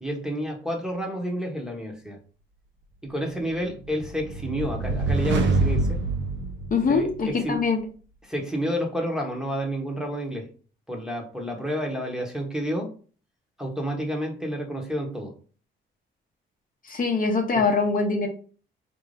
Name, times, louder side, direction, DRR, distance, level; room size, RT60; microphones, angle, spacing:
voice 1, 0.0-2.2 3.0-6.0 6.9-7.6 8.2-10.5 10.9-12.9 13.6-15.3 17.5-17.6, equal, 5° right, -1 dB, 0.9 m, -30 dB
sound 1, 3.5-7.4, right 3 dB, 60° right, 0.6 m, -26 dB
voice 2, 6.7-7.8 16.9-18.3, left 4 dB, 40° left, 2 dB, 0.7 m, -23 dB
4.4 x 2.6 x 3.2 m, 0.40 s
cardioid pair, 125°, 21 cm